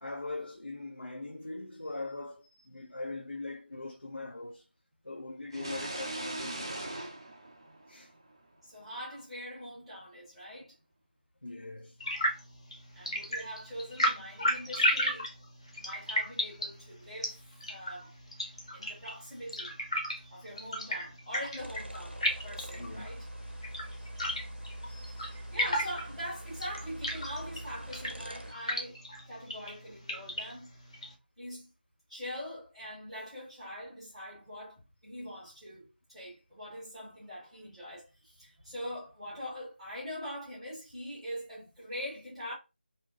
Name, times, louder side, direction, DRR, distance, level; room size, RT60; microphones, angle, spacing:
voice 1, 0.0-4.7 5.0-6.8 7.9-8.1 11.4-12.0 20.1-20.3 22.8-23.1 24.0-24.4 24.8-25.4 29.5-29.6, left 2 dB, 80° left, 0.5 m, -42 dB
sound 1, 5.5-8.3, right 1 dB, 30° right, 0.4 m, -39 dB
voice 2, 8.6-10.8 12.9-15.3 15.8-18.1 18.7-19.7 20.3-23.3 25.2-29.0 29.3-30.7 31.4-31.7 32.1-42.5, equal, ahead, 0.8 m, -43 dB
sound 2, 12.0-31.1, equal, 30° left, 0.7 m, -35 dB
sound 3, 21.6-28.5, right 1 dB, 90° right, 0.6 m, -43 dB
2.7 x 2.1 x 3.7 m
figure-of-eight pair, 165°, 6 cm